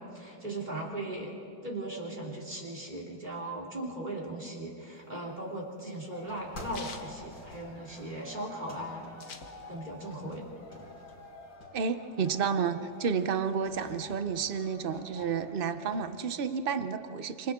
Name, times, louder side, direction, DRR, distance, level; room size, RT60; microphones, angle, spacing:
voice 1, 0.0-1.3 1.6-10.5, right 1 dB, 25° right, -3 dB, 3.3 m, -38 dB
sound 1, 5.0-8.2 8.5-8.6 8.8-10.0 10.4-11.5, left 5 dB, 55° left, 1.7 m, -48 dB
sound 2, 6.1-16.2, left 2 dB, 80° left, 4.2 m, -48 dB
voice 2, 11.7-17.5, right 6 dB, 55° right, 10 dB, 0.6 m, -31 dB
29.0 x 26.5 x 3.7 m, 2.9 s
omnidirectional pair, 2.0 m